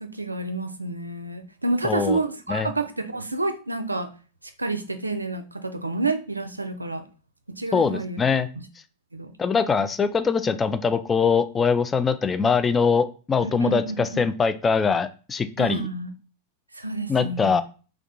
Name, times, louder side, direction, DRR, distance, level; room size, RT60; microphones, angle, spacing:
voice 1, 0.0-4.1 4.6-7.0 7.6-8.2 8.6-8.7 9.1-9.3 13.4-14.2 15.6-16.1 16.8-17.6, right 2 dB, 85° right, 7 dB, 0.4 m, -29 dB
voice 2, 1.8-2.2 2.5-2.7 7.7-8.5 9.4-15.9 17.1-17.6, left 5 dB, 20° left, 12 dB, 0.3 m, -22 dB
3.6 x 2.3 x 3.6 m, 0.35 s
figure-of-eight pair, 90°, 0 cm